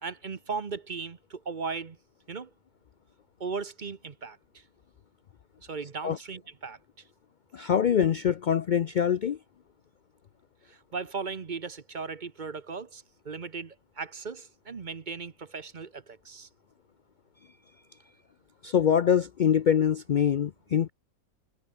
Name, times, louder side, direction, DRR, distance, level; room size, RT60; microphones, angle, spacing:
voice 1, 0.0-2.0 2.3-2.5 3.4-4.4 5.6-6.8 10.7-16.5, right 5 dB, 35° right, 1.0 m, -37 dB
voice 2, 7.5-9.4 18.6-20.9, left 8 dB, 85° left, 0.4 m, -24 dB
omnidirectional pair, 1.5 m